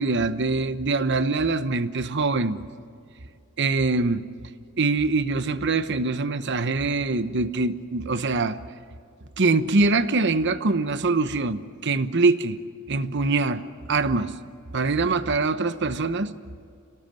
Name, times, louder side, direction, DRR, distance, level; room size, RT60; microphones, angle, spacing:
voice 1, 0.0-2.6 3.6-4.2 4.8-8.6 9.4-12.6 12.9-13.6 13.9-14.3 14.7-16.3, right 3 dB, 55° right, 1.0 m, -23 dB
28.0 x 18.5 x 7.6 m
head